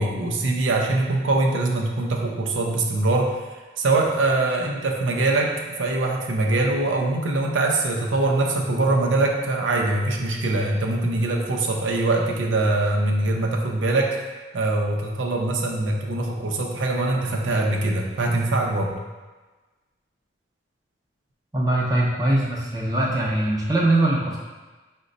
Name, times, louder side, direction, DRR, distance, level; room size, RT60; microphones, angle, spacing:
voice 1, 0.0-3.4 3.8-5.5 5.8-14.2 14.5-19.0, right 2 dB, 75° right, 0 dB, 0.6 m, -23 dB
voice 2, 21.5-24.4, right 1 dB, 20° right, -3 dB, 0.5 m, -22 dB
5.0 x 2.2 x 3.9 m, 1.2 s
head